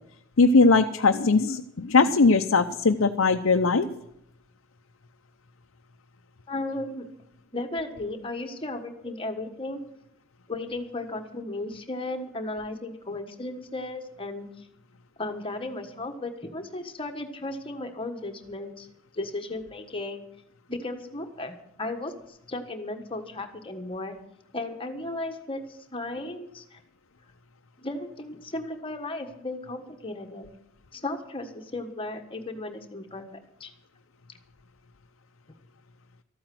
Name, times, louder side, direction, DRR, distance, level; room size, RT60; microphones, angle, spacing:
voice 1, 0.4-3.9, left 3 dB, 75° left, 4 dB, 0.7 m, -20 dB
voice 2, 6.5-7.0 7.5-9.8 10.5-14.5 15.2-18.9 19.1-20.2 20.7-24.1 24.5-26.8 27.8-30.5 30.9-33.3 33.6-33.7, left 2 dB, 25° left, 5 dB, 1.5 m, -35 dB
13.5 x 8.9 x 7.7 m, 0.76 s
head